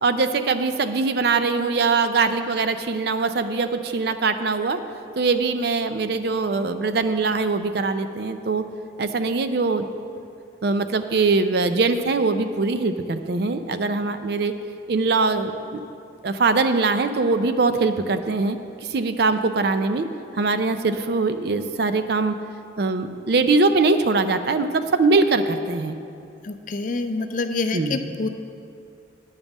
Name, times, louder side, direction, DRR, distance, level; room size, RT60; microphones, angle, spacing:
voice 1, 0.0-4.8 5.2-8.6 9.0-9.9 10.6-14.5 14.9-15.8 16.2-20.1 20.3-22.4 22.8-26.0 27.7-28.1, right 3 dB, 55° right, 9 dB, 0.4 m, -22 dB
voice 2, 26.4-28.3, left 3 dB, 40° left, 8 dB, 0.4 m, -27 dB
9.7 x 5.3 x 7.2 m, 2.4 s
head